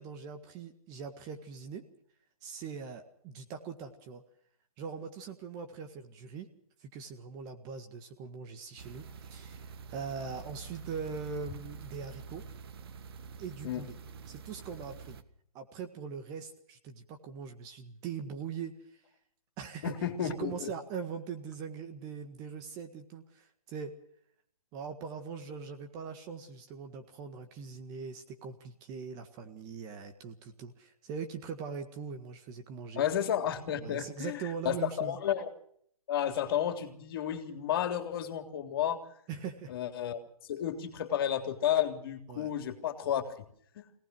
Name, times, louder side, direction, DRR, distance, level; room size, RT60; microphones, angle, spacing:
voice 1, 0.0-1.8 2.4-4.2 4.8-6.5 6.8-12.4 13.4-13.9 14.3-15.2 15.5-19.0 19.6-19.9 20.2-23.9 24.7-33.0 33.8-35.2 39.3-39.7 42.3-42.5, right 6 dB, 20° right, 6 dB, 1.7 m, -41 dB
sound 1, 8.8-15.2, right 5 dB, 40° right, 1.6 m, -47 dB
voice 2, 19.8-20.7 32.9-35.5 36.1-39.0 39.7-40.2 40.5-43.3 43.7-43.8, left 10 dB, 40° left, 6 dB, 3.3 m, -32 dB
24.5 x 18.5 x 6.2 m, 0.67 s
figure-of-eight pair, 150°, 19 cm